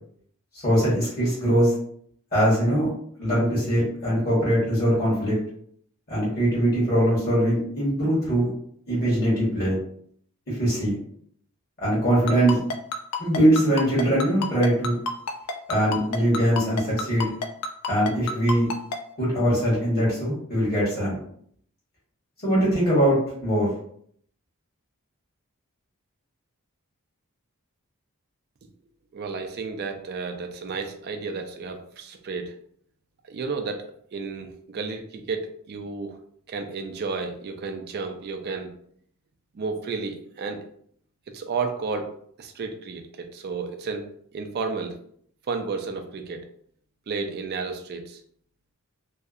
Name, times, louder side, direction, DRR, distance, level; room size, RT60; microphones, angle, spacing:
voice 1, 0.6-1.7 2.3-2.9 3.2-5.3 6.1-8.5 8.9-9.8 10.5-11.0 11.8-12.6 13.2-14.9 15.7-17.3 17.9-18.7 19.2-21.2 22.4-23.7, equal, 45° left, -7 dB, 1.1 m, -22 dB
Ringtone, 12.3-19.0, left 3 dB, 90° left, 0.4 m, -28 dB
voice 2, 29.1-32.5 33.2-33.8 34.1-36.1 36.5-38.7 39.5-40.6 41.3-42.1 42.4-44.1 44.3-45.0 45.5-46.5 47.1-48.2, right 4 dB, 45° right, 6 dB, 0.3 m, -32 dB
2.7 x 2.1 x 2.4 m, 0.65 s
head